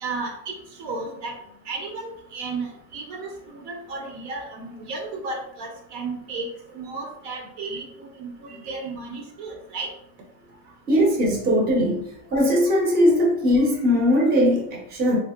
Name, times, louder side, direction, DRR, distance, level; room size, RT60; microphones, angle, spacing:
voice 1, 0.0-0.5 0.8-1.3 1.7-6.5 6.7-9.9, right 3 dB, 55° right, 2 dB, 0.8 m, -33 dB
voice 2, 10.9-12.0 12.3-15.2, equal, 20° right, -1 dB, 0.8 m, -20 dB
2.9 x 2.8 x 2.3 m, 0.73 s
supercardioid pair, 140°, 42 cm